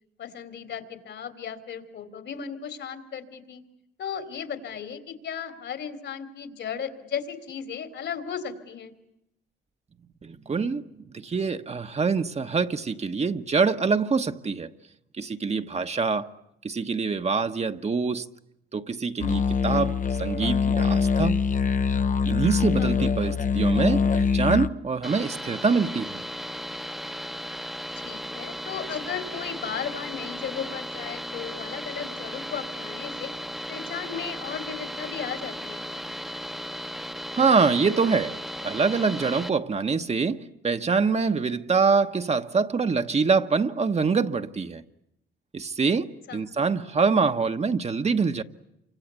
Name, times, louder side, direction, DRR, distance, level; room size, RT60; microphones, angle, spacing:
voice 1, 0.2-3.6 4.0-8.9 22.8-22.9 28.0-33.3 33.7-36.0 46.3-46.5, left 7 dB, 65° left, 3.2 m, -35 dB
voice 2, 10.2-10.8 11.1-14.7 15.2-16.3 16.6-18.3 18.7-21.4 22.3-26.2 37.3-38.4 38.6-44.8 45.5-48.4, right 4 dB, 35° right, 1.2 m, -25 dB
sound 1, 19.2-24.7, left 5 dB, 40° left, 1.0 m, -23 dB
sound 2, 25.0-39.5, equal, ahead, 1.1 m, -36 dB
28.0 x 25.0 x 8.2 m
cardioid pair, 90°, 20 cm